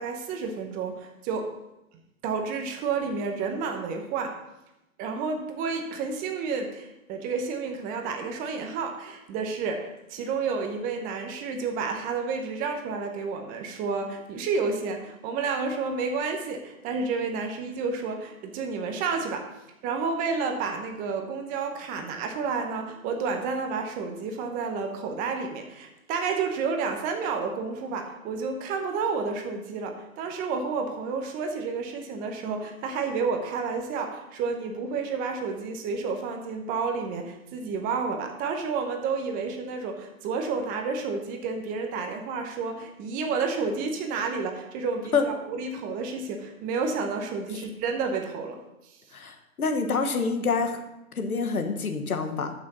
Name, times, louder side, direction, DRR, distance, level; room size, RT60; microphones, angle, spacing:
voice 1, 0.0-1.5 2.2-4.4 5.0-19.5 19.8-49.0, right 4 dB, 20° right, 5 dB, 0.9 m, -30 dB
voice 2, 49.1-50.8 51.1-52.5, left 4 dB, 85° left, 6 dB, 1.4 m, -26 dB
13.5 x 6.1 x 4.1 m, 0.91 s
hypercardioid pair, 130°, 42 cm